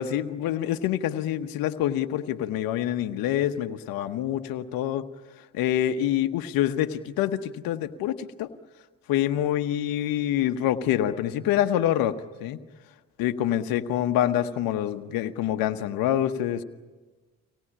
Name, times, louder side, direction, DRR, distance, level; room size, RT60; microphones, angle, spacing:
voice 1, 0.0-5.0 5.5-8.5 9.1-12.6 13.2-16.6, left 11 dB, 80° left, 7 dB, 1.1 m, -26 dB
25.0 x 18.0 x 10.0 m, 1.3 s
supercardioid pair, 60°, 35 cm